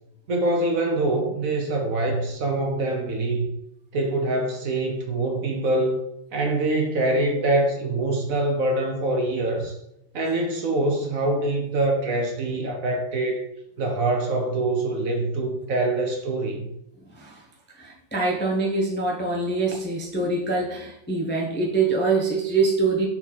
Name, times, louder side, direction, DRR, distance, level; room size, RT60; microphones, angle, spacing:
voice 1, 0.3-3.5 3.9-6.0 6.3-9.8 10.1-13.5 13.8-16.7, right 2 dB, 55° right, 2 dB, 1.1 m, -24 dB
voice 2, 17.0-23.1, right 3 dB, 15° left, -2 dB, 0.4 m, -25 dB
5.6 x 4.5 x 4.1 m, 0.81 s
omnidirectional pair, 2.1 m